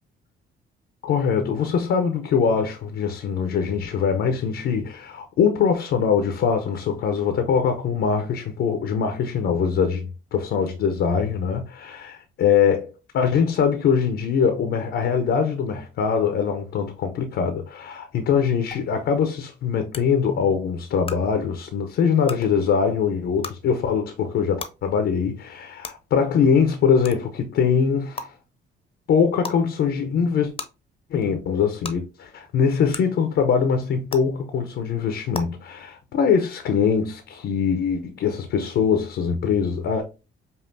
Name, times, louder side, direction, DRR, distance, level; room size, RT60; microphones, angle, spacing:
voice 1, 1.0-28.3 29.1-30.5 31.1-40.0, left 6 dB, 70° left, 0.7 m, -22 dB
sound 1, 18.7-18.8 19.9-20.0 21.0-21.1 22.2-22.3 23.4-23.5 24.6-24.7 25.8-25.9 27.0-27.2 28.2-28.3 29.4-29.6 30.6-30.7 31.8-31.9 32.9-33.0 34.1-34.2 35.3-35.4, left 4 dB, 30° left, 0.6 m, -32 dB
5.3 x 2.4 x 2.6 m
cardioid pair, 90°, 20 cm